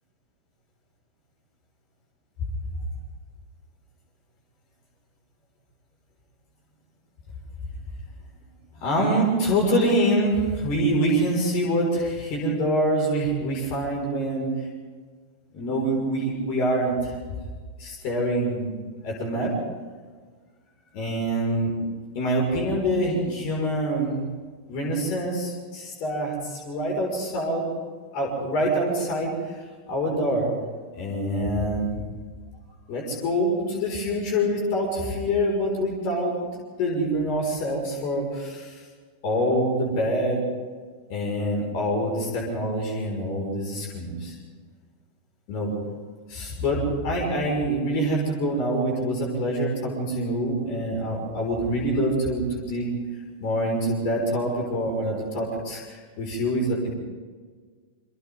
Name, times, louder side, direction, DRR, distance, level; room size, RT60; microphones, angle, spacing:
voice 1, 8.8-14.5 15.5-17.1 17.8-18.7 19.0-19.5 20.9-21.7 22.1-24.3 24.7-27.7 28.1-29.3 29.9-30.5 30.9-32.0 32.9-36.5 36.8-38.8 39.2-40.4 41.1-44.4 45.5-45.7 46.3-52.9 53.4-56.9, equal, 45° left, -1 dB, 6.2 m, -25 dB
28.5 x 24.5 x 4.0 m, 1.5 s
figure-of-eight pair, 90°, 0 cm